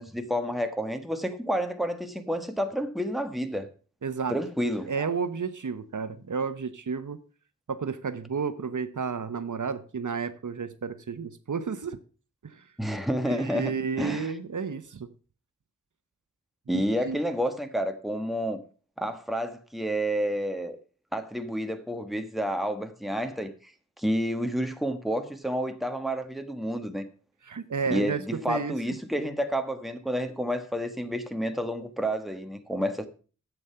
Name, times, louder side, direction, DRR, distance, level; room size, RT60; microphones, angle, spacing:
voice 1, 0.0-3.7 4.3-5.1 12.8-14.3 16.7-18.6 19.0-20.8 21.1-23.7 24.0-27.0 27.9-33.1, equal, ahead, 1.4 m, -30 dB
voice 2, 4.0-4.4 4.9-7.2 7.7-12.0 12.4-12.6 13.3-15.1 16.7-17.2 27.5-28.2 28.5-28.8, right 5 dB, 70° right, 0.9 m, -32 dB
11.0 x 8.1 x 5.6 m
wide cardioid pair, 70°, 31 cm